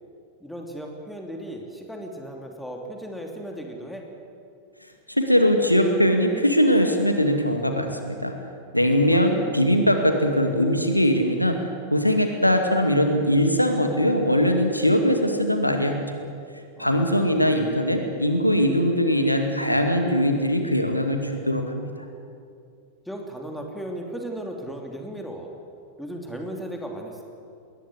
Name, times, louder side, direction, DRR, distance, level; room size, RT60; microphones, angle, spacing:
voice 1, 0.4-4.1 9.0-9.3 16.8-17.4 23.0-25.5 26.0-27.2, right 1 dB, ahead, 1 dB, 3.0 m, -36 dB
voice 2, 5.1-8.3 8.7-11.6 11.9-16.2 16.8-21.9, equal, 90° left, 5 dB, 2.1 m, -21 dB
21.0 x 19.5 x 8.4 m, 2.4 s
figure-of-eight pair, 90°, 0 cm